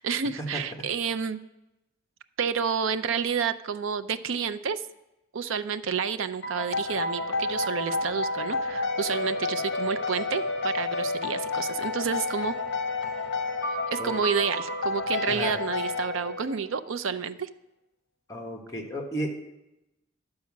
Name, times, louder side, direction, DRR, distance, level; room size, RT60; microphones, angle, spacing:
voice 1, 0.0-1.4 2.4-4.8 5.3-12.5 13.9-17.5, right 6 dB, 75° right, 11 dB, 0.5 m, -30 dB
sound 1, 6.4-16.8, left 3 dB, 60° left, 0.8 m, -30 dB
voice 2, 15.3-15.6 18.3-19.3, equal, 15° left, 0 dB, 1.3 m, -33 dB
11.5 x 4.8 x 7.3 m, 0.93 s
head